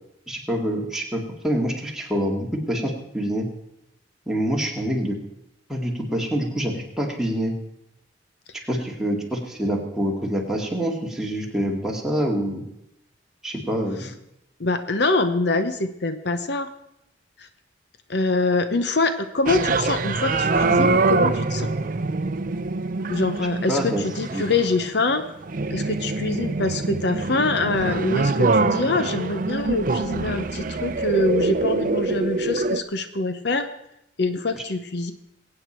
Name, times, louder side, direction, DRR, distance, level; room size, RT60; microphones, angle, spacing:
voice 1, 0.3-3.5 4.3-5.2 5.7-7.5 8.7-12.6 13.4-14.1 23.7-24.0 24.3-24.4, equal, 5° right, -1 dB, 2.2 m, -26 dB
voice 2, 14.6-16.7 17.4-17.5 18.1-21.7 23.1-25.2 25.7-33.7 34.2-35.1, left 3 dB, 65° left, 9 dB, 0.9 m, -24 dB
sound 1, 19.5-32.8, right 3 dB, 50° right, 0.6 m, -24 dB
22.0 x 8.9 x 4.5 m, 0.84 s
head